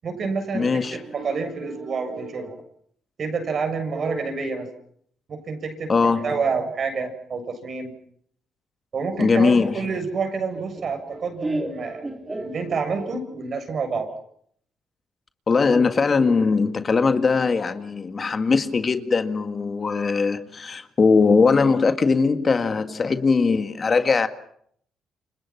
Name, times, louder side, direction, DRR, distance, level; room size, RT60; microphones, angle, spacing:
voice 1, 0.0-2.6 3.2-4.7 5.3-7.9 8.9-14.1 16.2-16.6, right 4 dB, 50° right, 7.1 m, -28 dB
voice 2, 0.5-1.0 5.9-6.4 9.2-9.8 15.5-24.3, left 4 dB, 35° left, 1.9 m, -20 dB
Laughter, 9.7-13.1, right 1 dB, 20° right, 3.2 m, -33 dB
29.5 x 26.0 x 6.0 m
cardioid pair, 90°, 0 cm